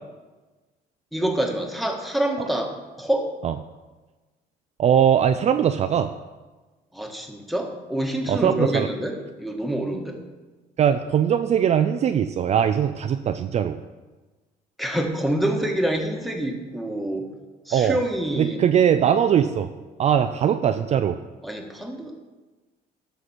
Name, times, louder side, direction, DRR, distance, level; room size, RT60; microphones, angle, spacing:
voice 1, 1.1-2.7 3.0-3.3 6.9-10.2 14.8-17.3 17.7-18.6 21.4-22.1, right 1 dB, ahead, 1 dB, 1.5 m, -26 dB
voice 2, 4.8-6.1 8.3-8.9 10.8-13.8 17.7-18.0 18.4-19.7 20.0-21.2, right 9 dB, 40° right, 8 dB, 0.4 m, -20 dB
12.5 x 6.1 x 4.3 m, 1.2 s
cardioid pair, 110°, 17 cm